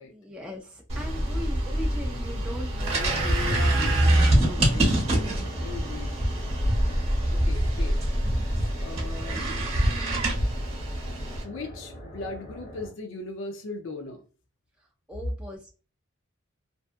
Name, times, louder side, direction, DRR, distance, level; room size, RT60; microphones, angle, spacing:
voice 1, 0.0-3.2 15.1-15.7, left 1 dB, 5° right, 0.3 m, -39 dB
sound 1, 0.9-11.4, right 1 dB, 30° right, 0.9 m, -25 dB
voice 2, 2.9-6.2 7.3-8.0 8.8-9.5 11.4-14.2, left 3 dB, 65° left, 0.5 m, -38 dB
sound 2, 4.1-12.9, equal, 40° left, 1.2 m, -43 dB
2.6 x 2.3 x 2.4 m
head